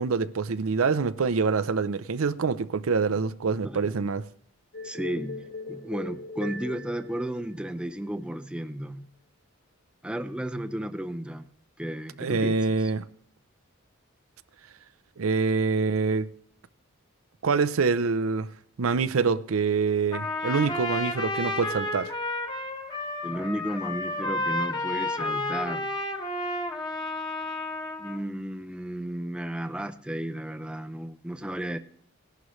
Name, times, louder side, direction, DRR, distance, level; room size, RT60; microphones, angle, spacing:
voice 1, 0.0-4.2 12.2-13.0 15.2-16.3 17.4-18.5 18.8-22.1, right 4 dB, 80° right, 0.6 m, -25 dB
sound 1, 4.7-8.1, left 3 dB, 80° left, 3.8 m, -39 dB
voice 2, 4.8-5.4 5.7-9.1 10.0-11.5 11.8-12.9 23.2-25.9 28.0-31.8, right 1 dB, 5° right, 0.5 m, -33 dB
Trumpet, 20.1-28.2, left 2 dB, 20° left, 1.2 m, -31 dB
17.5 x 11.5 x 3.1 m
head